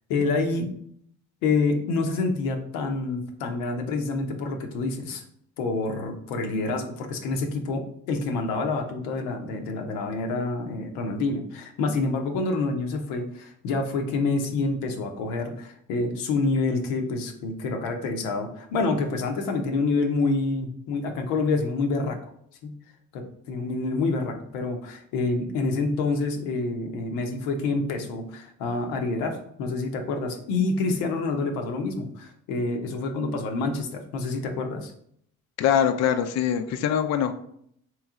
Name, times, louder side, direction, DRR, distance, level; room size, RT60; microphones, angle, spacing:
voice 1, 0.1-0.7 1.4-5.2 5.6-22.3 22.6-22.8 23.1-34.9, left 3 dB, 85° left, 4 dB, 0.7 m, -27 dB
voice 2, 35.6-37.3, left 9 dB, 50° left, 8 dB, 0.4 m, -23 dB
3.1 x 3.1 x 3.6 m, 0.67 s
supercardioid pair, 60°, 34 cm